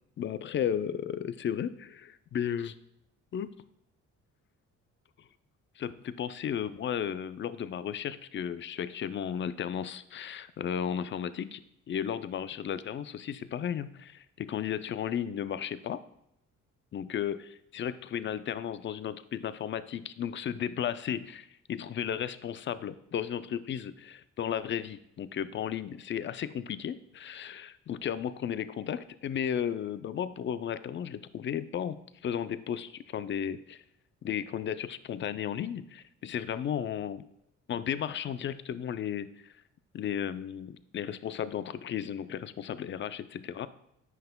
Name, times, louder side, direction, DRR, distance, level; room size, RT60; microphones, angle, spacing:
voice 1, 0.2-2.8 3.3-3.5 5.8-11.6 11.9-16.0 16.9-33.8 34.2-37.3 37.7-39.5 39.9-43.7, left 9 dB, 40° left, 14 dB, 0.4 m, -34 dB
9.3 x 5.6 x 2.2 m, 0.79 s
cardioid pair, 90°, 30 cm